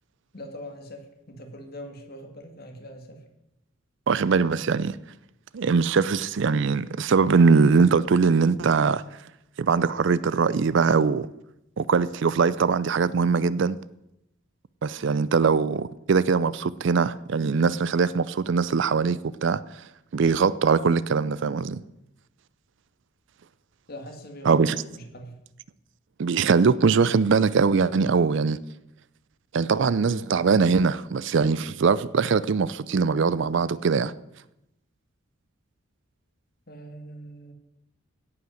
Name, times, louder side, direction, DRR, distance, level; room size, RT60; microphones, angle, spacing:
voice 1, 0.3-3.2 23.9-25.4 36.7-37.5, equal, 45° left, 2.0 m, -42 dB
voice 2, 4.1-5.0 5.5-9.0 9.6-11.3 11.8-13.8 14.8-19.6 20.1-21.8 24.5-24.7 26.2-28.6 29.5-34.1, right 5 dB, 60° right, 0.4 m, -22 dB
16.5 x 5.8 x 6.4 m
head